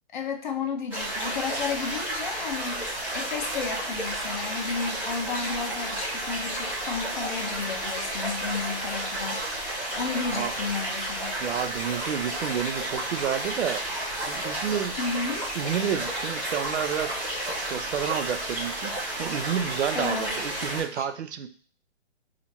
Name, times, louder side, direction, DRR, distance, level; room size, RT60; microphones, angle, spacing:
voice 1, 0.1-9.5 9.9-11.4 15.0-15.5 19.9-20.4 21.0-21.1, left 5 dB, 45° left, 5 dB, 0.5 m, -33 dB
sound 1, 0.9-20.8, right 1 dB, 5° right, 1.5 m, -32 dB
voice 2, 11.4-13.8 14.2-14.9 15.5-17.2 17.6-21.5, right 9 dB, 70° right, 11 dB, 0.5 m, -30 dB
4.0 x 2.5 x 2.9 m, 0.44 s
hypercardioid pair, 155°, 35 cm